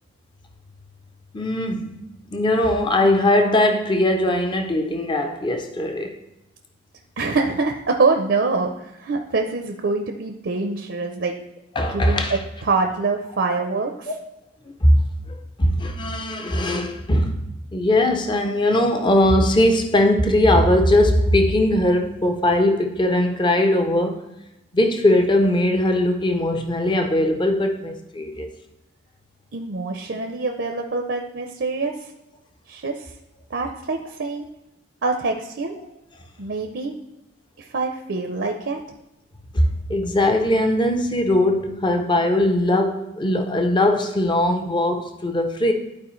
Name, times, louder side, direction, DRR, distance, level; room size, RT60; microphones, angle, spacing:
voice 1, 1.3-2.0 2.3-6.1 11.8-12.4 14.1-14.2 14.8-17.4 17.7-24.2 24.7-28.5 39.5-45.7, left 1 dB, 25° left, 0.6 m, -20 dB
voice 2, 7.2-11.3 11.9-12.2 12.6-14.1 29.5-32.0 32.7-33.1 33.5-34.5 35.0-35.7 36.4-36.9 37.6-38.8, right 3 dB, 60° right, 0.6 m, -25 dB
11.5 x 4.5 x 3.1 m
head